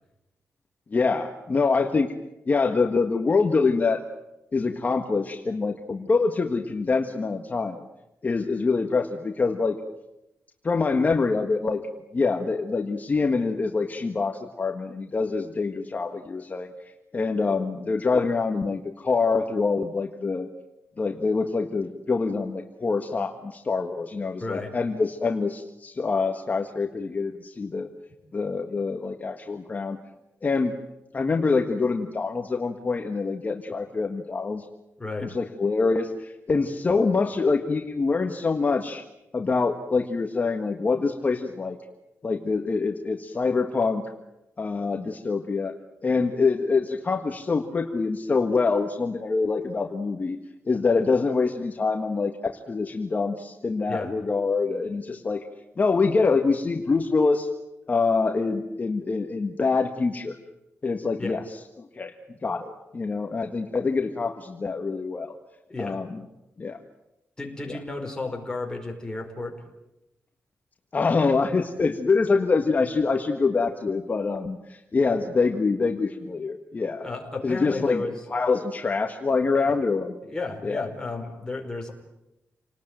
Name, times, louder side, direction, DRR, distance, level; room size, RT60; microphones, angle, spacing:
voice 1, 0.9-2.1 2.5-4.0 4.5-7.8 8.2-9.8 10.6-11.8 12.1-16.7 17.1-20.5 21.0-27.9 28.3-30.0 30.4-30.8 31.1-34.6 35.2-39.0 39.3-41.8 42.2-44.0 44.6-45.7 46.0-50.4 50.6-55.4 55.8-57.5 57.9-60.4 60.8-61.4 61.8-62.1 62.4-65.3 65.8-66.2 66.6-66.8 70.9-77.1 77.4-78.0 78.3-80.1 80.6-80.8, left 4 dB, 35° left, 4 dB, 1.6 m, -25 dB
voice 2, 24.4-24.7 35.0-35.3 53.9-54.1 61.2-61.4 65.7-66.0 67.4-69.6 77.0-78.2 79.5-79.7 80.2-81.9, left 2 dB, 15° left, 1 dB, 5.1 m, -33 dB
28.5 x 19.5 x 9.1 m, 0.93 s
wide cardioid pair, 140°, 5 cm